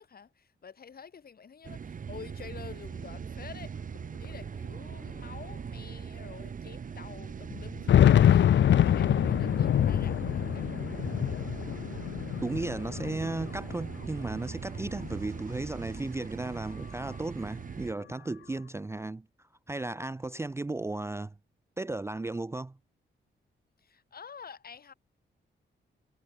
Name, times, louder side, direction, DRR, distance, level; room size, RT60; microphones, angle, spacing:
voice 1, 0.0-3.7 4.2-10.8 23.8-24.9, left 6 dB, 50° left, 2.5 m, -48 dB
sound 1, 1.6-17.9, right 6 dB, 45° right, 0.9 m, -40 dB
sound 2, 4.0-4.1 4.2-4.3 5.2-5.3 5.8-5.9 7.5-13.9 14.3-15.3, left 10 dB, 70° left, 0.7 m, -25 dB
voice 2, 12.4-19.3 19.7-21.3 21.8-22.8, right 2 dB, 15° right, 0.5 m, -35 dB
cardioid pair, 100°, 20 cm